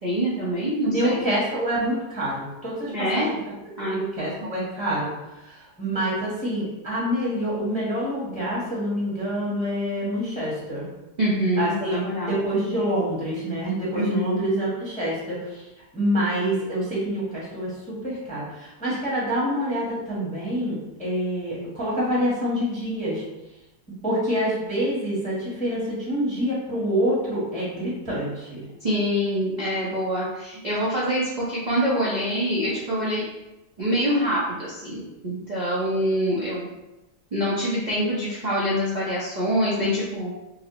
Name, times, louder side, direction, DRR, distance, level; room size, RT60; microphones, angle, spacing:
voice 1, 0.0-1.2 2.9-3.3 3.8-4.5 11.2-12.4 13.9-14.4 28.8-33.2 33.8-36.7 37.3-40.3, equal, 40° right, -9 dB, 0.7 m, -25 dB
voice 2, 0.8-3.4 3.9-5.1 5.4-10.8 11.6-15.6 15.9-23.2 24.0-28.6, equal, 5° left, -7 dB, 1.0 m, -26 dB
5.1 x 2.1 x 3.0 m, 0.98 s
omnidirectional pair, 1.8 m